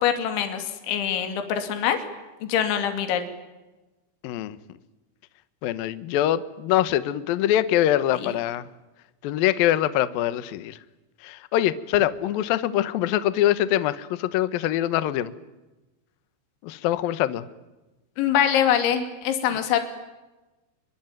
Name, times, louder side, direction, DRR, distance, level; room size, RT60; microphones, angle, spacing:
voice 1, 0.0-2.0 2.4-3.2 8.1-8.3 18.2-19.8, left 9 dB, 65° left, 7 dB, 4.8 m, -24 dB
voice 2, 4.2-4.6 5.6-8.6 9.2-10.8 11.2-15.3 16.6-17.5, left 12 dB, 85° left, 14 dB, 2.1 m, -24 dB
25.5 x 23.5 x 9.2 m, 1.1 s
omnidirectional pair, 5.9 m